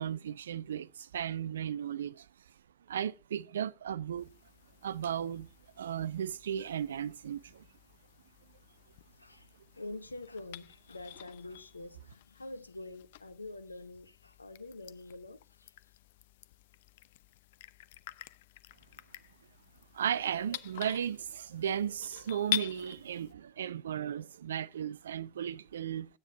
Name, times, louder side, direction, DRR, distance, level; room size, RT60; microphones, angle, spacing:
voice 1, 0.0-2.3 2.9-4.3 4.8-5.5 5.8-7.6 19.9-26.1, right 9 dB, 70° right, 0.5 m, -35 dB
sound 1, 4.2-23.3, left 13 dB, 60° left, 0.6 m, -46 dB
voice 2, 9.2-15.7, left 2 dB, 85° left, 0.9 m, -46 dB
12.5 x 9.3 x 5.5 m
figure-of-eight pair, 85°, 0 cm